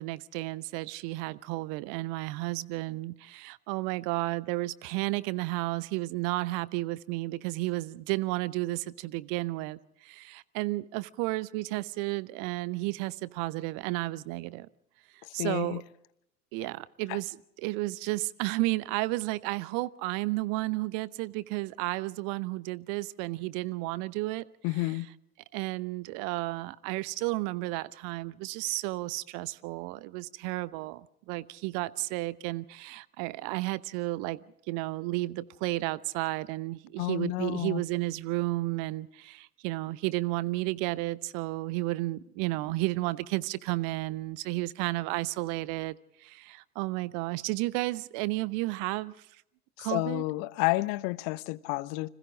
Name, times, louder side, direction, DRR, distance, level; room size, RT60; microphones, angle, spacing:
voice 1, 0.0-14.7 15.3-15.8 16.5-24.5 25.5-49.3 49.8-50.2, right 20 dB, 45° right, 0.9 m, -32 dB
voice 2, 15.2-15.8 17.1-17.2 24.6-25.1 37.0-37.8 49.8-52.1, left 21 dB, 45° left, 1.1 m, -30 dB
29.5 x 26.0 x 3.8 m
figure-of-eight pair, 75°, 45 cm